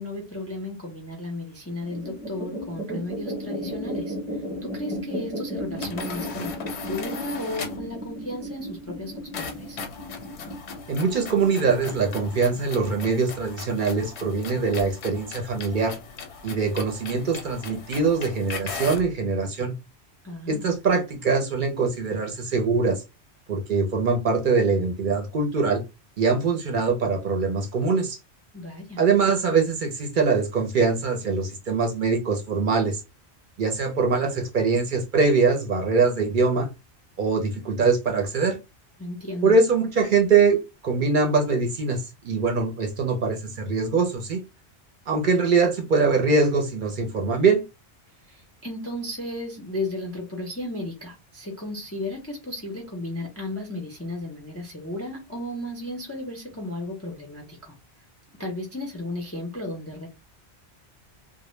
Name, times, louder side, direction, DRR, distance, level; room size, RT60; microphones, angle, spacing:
voice 1, 0.0-4.2 4.6-9.8 20.2-20.7 28.5-29.0 39.0-39.5 48.3-57.7 58.4-60.1, left 1 dB, 20° left, 1 dB, 0.4 m, -34 dB
sound 1, 1.8-12.6, equal, 10° right, 0.7 m, -35 dB
sound 2, 5.7-7.9 9.3-19.1, left 5 dB, 85° left, 0.9 m, -38 dB
voice 2, 10.9-15.9 16.4-19.7 20.5-23.0 23.5-25.8 26.2-28.2 29.0-33.0 33.6-36.7 37.2-38.6 39.4-44.4 45.1-47.6, right 4 dB, 60° right, 3 dB, 0.6 m, -23 dB
2.0 x 2.0 x 3.0 m, 0.25 s
omnidirectional pair, 1.1 m